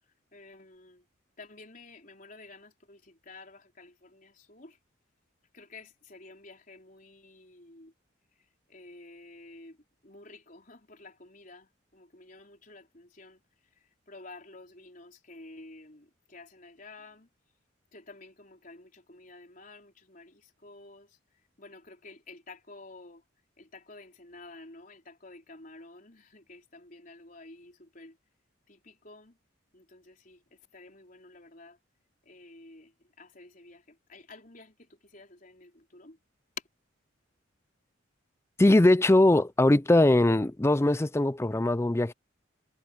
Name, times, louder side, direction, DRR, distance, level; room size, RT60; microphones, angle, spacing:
voice 1, 0.3-1.0 1.4-4.8 5.5-7.9 8.7-9.8 10.0-13.4 14.1-17.3 17.9-21.2 21.6-23.2 23.6-28.2 28.7-29.4 29.7-31.8 32.2-36.2, left 2 dB, 45° left, 4.6 m, -51 dB
voice 2, 38.6-42.1, left 1 dB, 15° left, 0.4 m, -21 dB
head